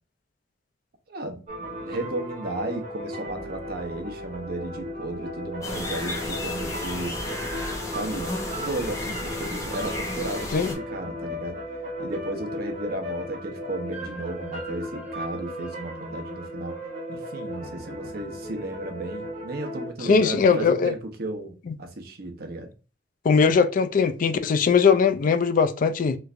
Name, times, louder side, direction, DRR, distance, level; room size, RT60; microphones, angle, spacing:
voice 1, 1.1-7.2 7.9-11.6 12.0-16.8 17.1-22.7 23.4-23.5, right 2 dB, 60° right, 0.7 m, -34 dB
sound 1, 1.5-19.9, equal, 40° right, 1.2 m, -36 dB
sound 2, 5.6-10.7, left 2 dB, 20° left, 0.7 m, -33 dB
voice 2, 20.0-20.9 21.7-21.8 23.2-26.2, left 5 dB, 50° left, 0.3 m, -20 dB
3.2 x 3.1 x 2.4 m
head